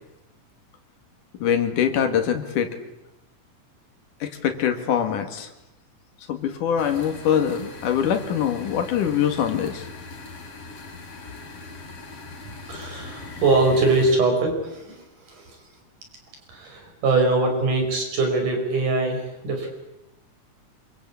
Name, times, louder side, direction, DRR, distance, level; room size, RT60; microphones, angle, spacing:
voice 1, 1.4-2.7 4.2-5.5 6.3-9.9, left 8 dB, 80° left, 6 dB, 3.5 m, -23 dB
sound 1, 6.8-14.2, left 3 dB, 50° left, 4.2 m, -40 dB
voice 2, 12.7-15.0 15.3-15.5 16.5-19.7, right 3 dB, 80° right, 3 dB, 6.9 m, -22 dB
26.0 x 23.5 x 8.5 m, 0.92 s
omnidirectional pair, 3.6 m